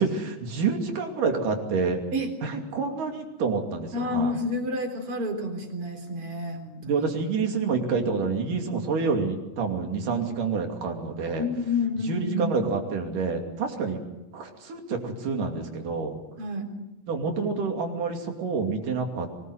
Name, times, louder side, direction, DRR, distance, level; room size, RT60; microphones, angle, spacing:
voice 1, 0.0-2.0 2.4-4.3 6.8-11.5 12.1-14.0 14.3-16.2 17.1-19.3, right 4 dB, 70° right, 3 dB, 4.3 m, -28 dB
voice 2, 3.9-7.0 11.3-12.5 16.4-16.7, left 2 dB, 40° right, 4 dB, 4.5 m, -29 dB
24.0 x 20.0 x 8.0 m, 0.98 s
omnidirectional pair, 3.9 m